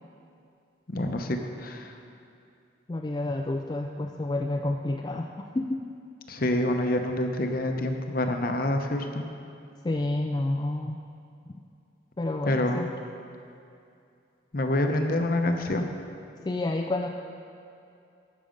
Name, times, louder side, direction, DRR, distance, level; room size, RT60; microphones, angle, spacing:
voice 1, 0.9-2.0 6.3-9.2 12.5-12.8 14.5-15.9, left 1 dB, 45° left, 5 dB, 0.8 m, -27 dB
voice 2, 2.9-5.8 9.8-11.0 12.2-12.9 16.4-17.1, left 2 dB, 20° left, 1 dB, 0.3 m, -29 dB
12.5 x 6.7 x 5.2 m, 2.5 s
head